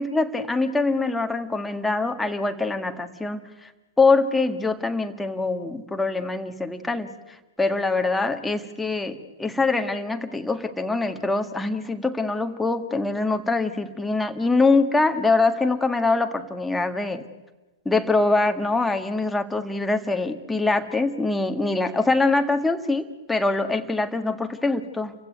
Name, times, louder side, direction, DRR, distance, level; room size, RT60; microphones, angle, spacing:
voice 1, 0.0-3.7 4.0-7.1 7.6-17.3 17.9-25.1, left 3 dB, 5° left, 5 dB, 1.8 m, -24 dB
30.0 x 16.0 x 9.4 m, 1.1 s
figure-of-eight pair, 105°, 0 cm